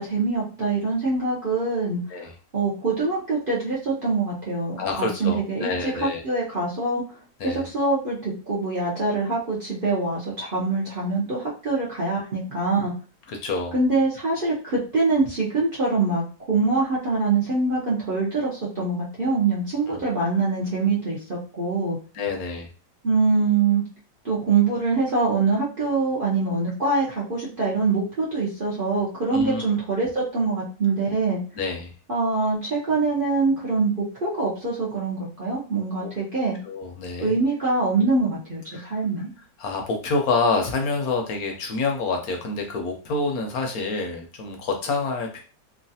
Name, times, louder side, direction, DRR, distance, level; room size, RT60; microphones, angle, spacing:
voice 1, 0.0-2.3 2.5-7.0 7.4-12.9 13.7-22.0 23.0-23.8 24.2-31.4 32.1-36.6 37.2-39.3, right 3 dB, 55° right, -6 dB, 0.5 m, -24 dB
voice 2, 4.8-6.2 7.4-7.6 13.3-13.7 19.9-20.0 22.1-22.7 29.3-29.6 31.6-31.9 36.0-36.1 36.6-37.4 38.7-39.0 39.6-45.4, left 3 dB, 70° left, 3 dB, 1.0 m, -27 dB
3.1 x 2.4 x 2.6 m, 0.37 s
omnidirectional pair, 1.8 m